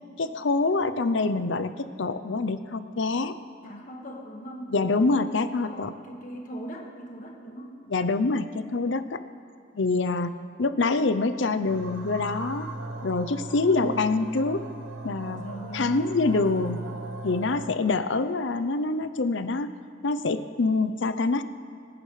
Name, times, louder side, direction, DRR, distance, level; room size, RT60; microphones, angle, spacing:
voice 1, 0.2-1.7 2.0-3.3 4.7-5.9 7.9-9.2 9.7-10.3 10.6-12.7 13.0-14.6 15.0-15.4 15.7-16.8 17.2-19.7 20.0-21.4, left 3 dB, 65° left, 12 dB, 0.6 m, -25 dB
voice 2, 3.6-7.8 13.7-14.0 15.3-16.0, equal, 40° left, 0 dB, 1.7 m, -40 dB
sound 1, 11.7-17.8, right 2 dB, 80° right, 1.2 m, -38 dB
26.5 x 9.8 x 3.3 m, 2.5 s
head